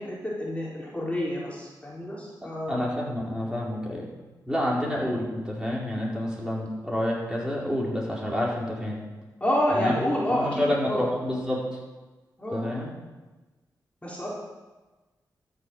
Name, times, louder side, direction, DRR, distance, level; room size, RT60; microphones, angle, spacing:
voice 1, 0.0-2.8 9.4-11.1 12.4-12.7 14.0-14.3, equal, 15° left, -5 dB, 3.9 m, -28 dB
voice 2, 2.7-4.1 4.5-9.0 9.7-9.9 10.3-11.6 12.5-12.9, left 1 dB, 10° right, -4 dB, 4.6 m, -28 dB
13.0 x 7.4 x 7.9 m, 1.2 s
cardioid pair, 60°, 8 cm